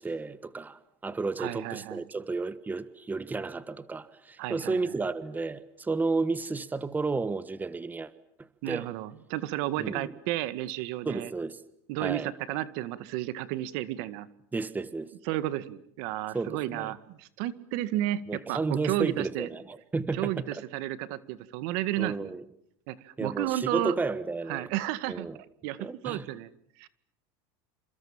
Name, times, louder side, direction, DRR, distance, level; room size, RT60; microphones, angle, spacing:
voice 1, 0.0-8.1 8.7-8.9 9.8-10.1 11.0-11.6 12.0-12.3 14.5-15.1 16.3-16.9 18.3-20.6 22.0-22.4 23.2-24.7 25.1-25.4 25.8-26.2, right 3 dB, 15° right, 1.4 m, -32 dB
voice 2, 1.4-2.0 4.4-5.0 8.6-11.3 11.9-14.3 15.3-19.5 20.1-22.3 22.9-24.0 24.5-25.3 25.6-26.5 26.8-26.9, right 14 dB, 65° right, 2.0 m, -32 dB
28.5 x 27.5 x 7.5 m
supercardioid pair, 130°, 14 cm